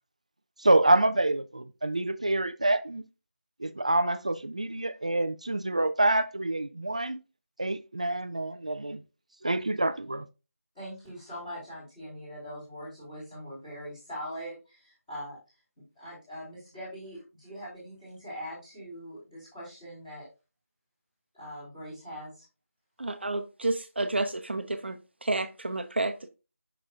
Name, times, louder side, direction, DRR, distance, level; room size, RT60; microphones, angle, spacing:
voice 1, 0.6-3.0 3.6-7.2 7.6-9.0 9.4-10.3, right 2 dB, 25° right, 0.3 m, -26 dB
voice 2, 10.7-15.4 16.0-20.3 21.3-22.4, equal, 15° left, 3.7 m, -42 dB
voice 3, 23.0-26.3, right 2 dB, 45° right, 0.8 m, -30 dB
7.1 x 6.0 x 2.4 m
figure-of-eight pair, 170°, 8 cm